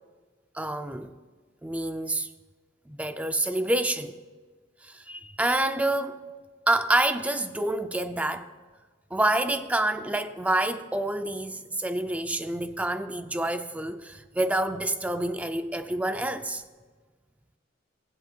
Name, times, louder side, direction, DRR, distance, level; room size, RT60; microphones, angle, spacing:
voice 1, 0.5-1.1 1.6-2.3 2.9-4.2 4.8-6.2 6.7-8.5 9.1-16.6, right 1 dB, 5° right, 0.4 m, -27 dB
19.0 x 7.8 x 2.3 m
head